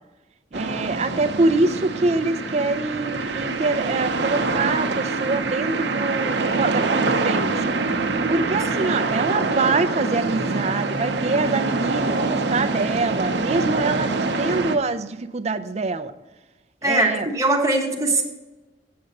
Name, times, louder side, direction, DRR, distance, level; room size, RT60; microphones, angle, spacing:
voice 1, 0.5-7.7 8.3-16.1 16.8-17.3, right 3 dB, 40° right, 10 dB, 0.5 m, -25 dB
sound 1, 0.5-14.8, right 3 dB, 75° right, 0.7 m, -25 dB
voice 2, 16.8-18.2, right 2 dB, 20° right, 0 dB, 1.3 m, -21 dB
7.7 x 6.9 x 5.3 m, 1.1 s
head